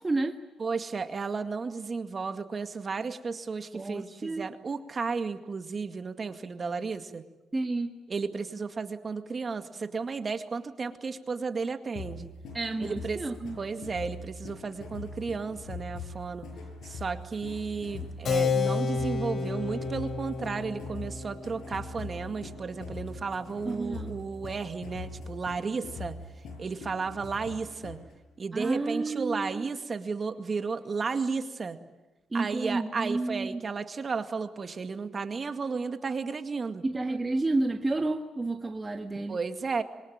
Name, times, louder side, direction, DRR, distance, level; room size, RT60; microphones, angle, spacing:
voice 1, 0.0-0.4 3.7-4.5 7.5-7.9 12.5-13.6 23.6-24.1 28.5-29.7 32.3-33.6 36.8-39.4, right 2 dB, 20° right, 4 dB, 1.6 m, -30 dB
voice 2, 0.6-7.2 8.1-12.3 12.8-13.2 13.6-16.5 16.8-26.1 26.6-28.0 28.4-31.8 32.3-36.8 39.3-39.8, right 4 dB, 40° right, 8 dB, 2.1 m, -33 dB
sound 1, 11.9-28.1, left 3 dB, 75° left, 7.6 m, -42 dB
Keyboard (musical), 18.2-24.4, left 4 dB, 55° left, 3.9 m, -32 dB
26.0 x 23.5 x 9.0 m, 1.1 s
cardioid pair, 90°, 0 cm